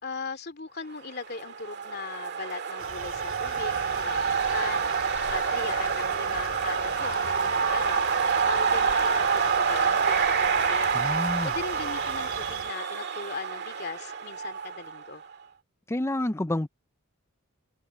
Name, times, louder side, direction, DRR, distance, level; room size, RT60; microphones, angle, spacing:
voice 1, 0.0-3.8 4.0-4.2 4.5-8.1 8.4-10.9 11.4-15.2, left 4 dB, 50° left, 2.5 m, -38 dB
sound 1, 1.3-15.1, right 6 dB, 50° right, 2.0 m, -27 dB
sound 2, 2.8-12.7, right 4 dB, 90° right, 4.7 m, -47 dB
sound 3, 3.4-12.7, left 3 dB, 90° left, 4.5 m, -47 dB
voice 2, 10.9-11.5 15.9-16.7, left 1 dB, 10° left, 0.5 m, -28 dB
head